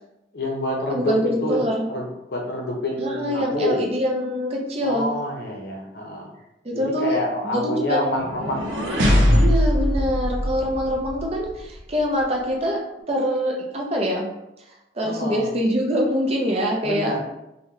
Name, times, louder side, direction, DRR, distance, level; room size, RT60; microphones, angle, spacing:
voice 1, 0.3-3.8 4.8-6.3 6.7-8.9 15.0-15.5 16.8-17.2, left 1 dB, 55° left, -1 dB, 0.7 m, -27 dB
voice 2, 0.9-1.9 3.0-5.2 6.6-7.2 7.4-8.2 9.3-12.8 13.1-14.3 14.9-17.1, equal, 30° right, 0 dB, 0.5 m, -24 dB
sound 1, 8.1-11.3, equal, 75° right, 0.6 m, -20 dB
2.9 x 2.2 x 3.6 m, 0.90 s
head